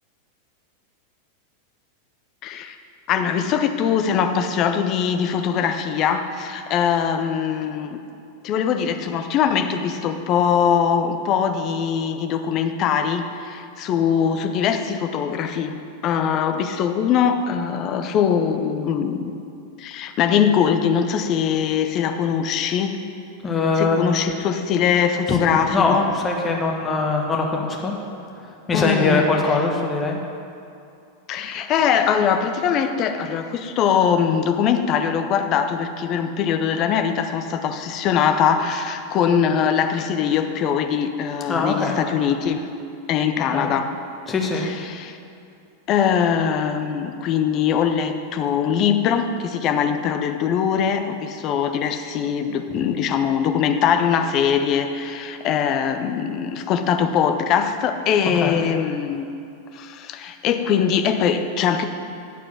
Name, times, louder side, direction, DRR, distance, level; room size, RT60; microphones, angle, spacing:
voice 1, 2.4-2.8 3.1-8.0 8.4-15.8 16.0-19.3 19.8-23.0 23.8-26.1 28.7-29.3 31.3-42.7 43.1-43.9 44.6-45.2 45.9-59.3 59.7-61.8, left 7 dB, 35° left, 7 dB, 0.6 m, -22 dB
voice 2, 23.4-24.2 25.3-25.4 25.7-27.9 28.4-30.2 41.5-42.0 43.4-43.7 44.3-44.7 52.7-52.8 58.3-58.6, left 3 dB, 20° left, 0 dB, 1.3 m, -22 dB
11.0 x 4.6 x 7.2 m, 2.5 s
figure-of-eight pair, 90°, 0 cm